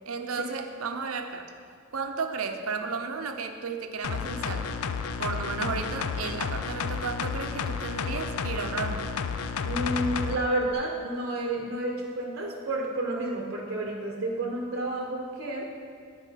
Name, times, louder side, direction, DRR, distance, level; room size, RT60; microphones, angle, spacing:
voice 1, 0.1-1.5 1.9-4.7 5.2-9.2, right 4 dB, 80° right, 6 dB, 0.7 m, -33 dB
sound 1, 4.0-10.4 10.7-10.8, left 6 dB, 90° left, 0.4 m, -31 dB
voice 2, 9.6-15.7, right 1 dB, 45° right, -1 dB, 0.9 m, -30 dB
10.5 x 4.8 x 5.7 m, 2.1 s
head